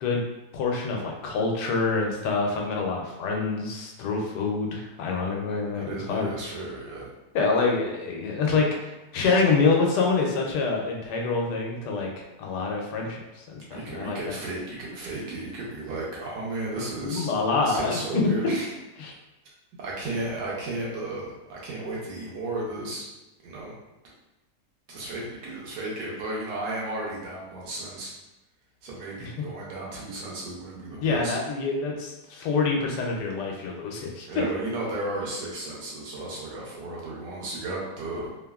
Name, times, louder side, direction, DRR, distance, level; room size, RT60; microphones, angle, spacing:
voice 1, 0.5-6.3 7.3-12.1 12.4-14.4 17.0-18.5 19.0-19.1 29.2-29.3 31.0-34.4, left 4 dB, 80° left, 0 dB, 1.1 m, -26 dB
voice 2, 5.7-7.1 13.7-17.3 17.6-18.7 19.8-23.1 23.4-23.7 24.9-28.1 28.8-31.4 34.3-38.3, right 2 dB, 85° right, -4 dB, 1.4 m, -34 dB
3.2 x 2.1 x 2.3 m, 1.0 s
omnidirectional pair, 1.8 m